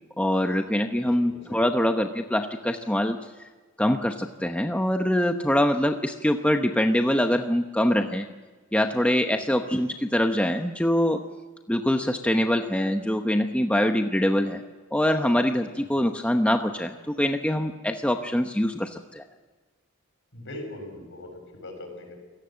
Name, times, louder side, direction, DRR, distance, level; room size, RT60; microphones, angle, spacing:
voice 1, 0.2-3.2 3.8-8.3 8.7-11.2 11.7-14.6 14.9-19.2, left 1 dB, 5° left, 5 dB, 0.9 m, -24 dB
voice 2, 1.0-1.7 9.3-9.5 15.8-16.0 20.3-22.1, left 1 dB, 60° left, 4 dB, 7.1 m, -41 dB
28.5 x 17.5 x 7.6 m, 1.3 s
head